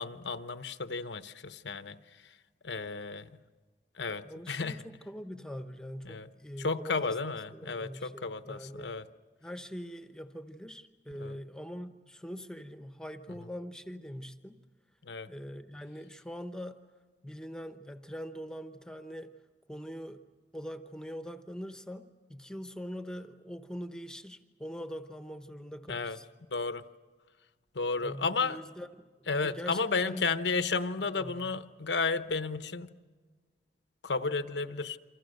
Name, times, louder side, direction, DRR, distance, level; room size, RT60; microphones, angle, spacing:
voice 1, 0.0-2.0 2.6-3.4 4.0-4.8 6.0-6.3 6.6-9.1 11.2-11.3 15.0-15.3 25.9-26.2 26.5-26.8 27.7-28.6 29.3-32.9 34.0-35.0, left 4 dB, 85° left, 11 dB, 1.0 m, -33 dB
voice 2, 4.2-9.0 9.4-14.6 15.3-16.8 17.2-19.3 19.7-20.2 20.5-26.2 28.0-30.3 31.0-31.5, equal, 5° left, 8 dB, 0.9 m, -43 dB
28.0 x 25.5 x 6.6 m, 1.4 s
head